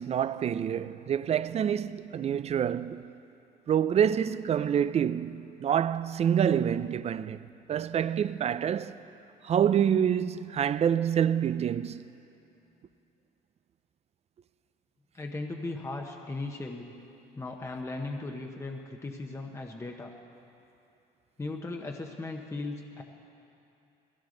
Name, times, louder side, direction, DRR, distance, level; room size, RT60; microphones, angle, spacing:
voice 1, 0.0-3.1 3.7-7.4 7.7-8.9 9.4-12.0, right 9 dB, 40° right, 0.4 m, -27 dB
voice 2, 15.1-16.9 17.4-20.1 21.4-23.0, left 2 dB, 15° left, 1.0 m, -37 dB
21.0 x 16.0 x 3.9 m
cardioid pair, 110°, 17 cm